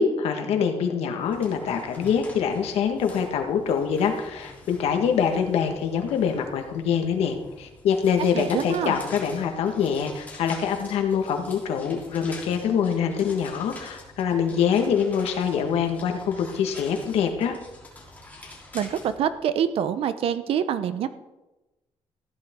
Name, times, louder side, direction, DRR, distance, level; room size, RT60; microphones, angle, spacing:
voice 1, 0.0-17.5, left 7 dB, 90° left, 4 dB, 1.6 m, -25 dB
sound 1, 1.2-19.3, left 2 dB, 15° left, 3.5 m, -45 dB
voice 2, 8.3-9.0 18.7-21.1, right 9 dB, 70° right, 12 dB, 0.8 m, -26 dB
15.0 x 10.5 x 3.8 m, 1.1 s
cardioid pair, 135°, 10 cm